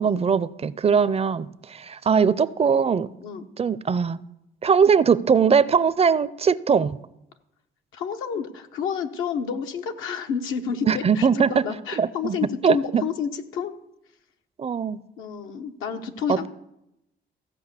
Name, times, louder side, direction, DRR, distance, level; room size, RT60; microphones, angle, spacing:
voice 1, 0.0-3.1 3.6-4.2 4.6-7.0 10.9-11.7 12.0-12.4 12.6-13.0 14.6-15.0 16.3-16.5, right 6 dB, 30° right, 18 dB, 0.4 m, -21 dB
voice 2, 7.9-13.7 15.2-16.5, left 7 dB, 90° left, 5 dB, 1.0 m, -30 dB
14.5 x 5.3 x 8.1 m, 0.86 s
cardioid pair, 90°, 20 cm